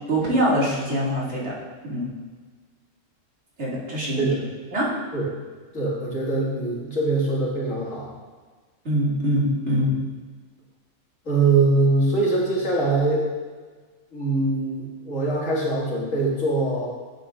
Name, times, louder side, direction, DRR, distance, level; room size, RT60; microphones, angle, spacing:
voice 1, 0.1-1.6 1.8-2.1 3.6-4.2 4.7-4.9 8.8-10.0, equal, 60° right, -7 dB, 2.6 m, -23 dB
voice 2, 5.7-8.1 11.3-13.3 14.1-16.9, right 3 dB, 85° left, -5 dB, 2.4 m, -23 dB
10.5 x 8.5 x 2.5 m, 1.4 s
omnidirectional pair, 1.3 m